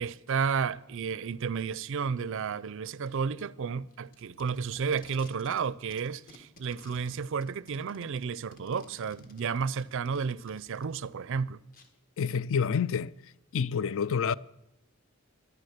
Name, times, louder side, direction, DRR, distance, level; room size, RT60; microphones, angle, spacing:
voice 1, 0.0-11.6, right 6 dB, 60° right, 0.4 m, -32 dB
Packing tape duct tape, 3.9-5.6 5.9-11.0 11.7-11.9, left 2 dB, 40° left, 1.7 m, -54 dB
voice 2, 12.2-13.1 13.5-14.3, left 6 dB, 60° left, 0.4 m, -28 dB
13.0 x 11.0 x 6.6 m
head